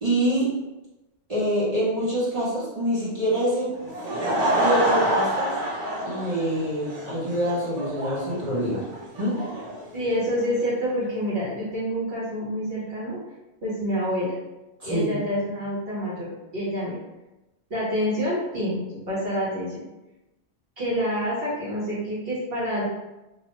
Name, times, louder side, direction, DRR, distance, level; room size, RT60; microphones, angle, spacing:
voice 1, 0.0-0.5 1.3-3.7 4.5-5.5 6.0-8.8 9.2-9.4 14.8-15.1, right 1 dB, 35° right, -10 dB, 1.0 m, -25 dB
Laughter / Crowd, 3.7-10.7, right 1 dB, 90° right, 1.0 m, -27 dB
voice 2, 9.9-13.2 13.6-14.3 14.8-17.0 17.7-19.8 20.8-22.8, equal, 60° right, -9 dB, 1.2 m, -27 dB
2.5 x 2.4 x 3.0 m, 0.99 s
omnidirectional pair, 1.2 m